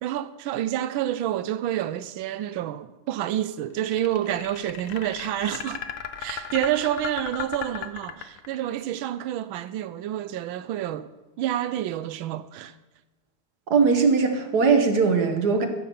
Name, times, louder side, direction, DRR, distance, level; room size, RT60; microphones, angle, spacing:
voice 1, 0.0-5.8 6.2-11.1 11.4-12.7, right 12 dB, 75° right, 1.3 m, -28 dB
sound 1, 3.8-8.8, left 9 dB, 65° left, 0.8 m, -35 dB
voice 2, 13.7-15.7, right 5 dB, 55° right, 1.4 m, -20 dB
14.5 x 5.7 x 7.0 m
omnidirectional pair, 2.4 m